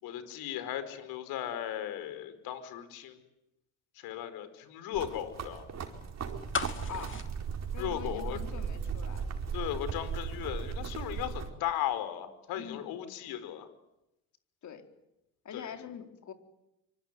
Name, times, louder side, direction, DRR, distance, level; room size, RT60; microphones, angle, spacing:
voice 1, 0.0-3.2 4.0-5.6 7.8-8.4 9.5-13.7 15.5-15.7, left 11 dB, 70° left, 11 dB, 5.0 m, -36 dB
sound 1, 4.9-11.5, right 6 dB, 45° right, 4.5 m, -37 dB
sound 2, 6.5-8.6 8.9-9.0, left 5 dB, 35° left, 2.7 m, -37 dB
voice 2, 6.9-7.2 7.7-9.3 12.5-12.9 14.6-14.8 15.4-16.3, left 7 dB, 50° left, 5 dB, 4.4 m, -44 dB
25.0 x 25.0 x 9.5 m, 0.90 s
supercardioid pair, 80°, 37 cm